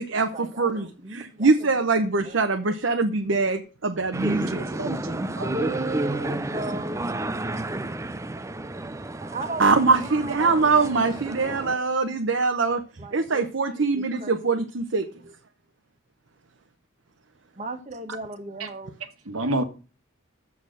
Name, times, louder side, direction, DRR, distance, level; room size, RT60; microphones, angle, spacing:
voice 1, 0.3-1.9 2.2-2.4 2.7-2.8 3.0-3.3 5.4-7.6 9.2-11.9 13.0-14.6 15.2-15.3 17.6-19.1, right 2 dB, 35° right, 1.3 m, -38 dB
voice 2, 1.1-4.6 9.6-12.8 13.1-15.1, right 4 dB, 60° right, 0.8 m, -23 dB
sound 1, 4.1-11.7, right 1 dB, 15° right, 0.4 m, -31 dB
voice 3, 4.5-5.5 18.6-18.7 19.3-19.6, right 1 dB, 80° right, 1.4 m, -29 dB
7.1 x 6.3 x 7.7 m
head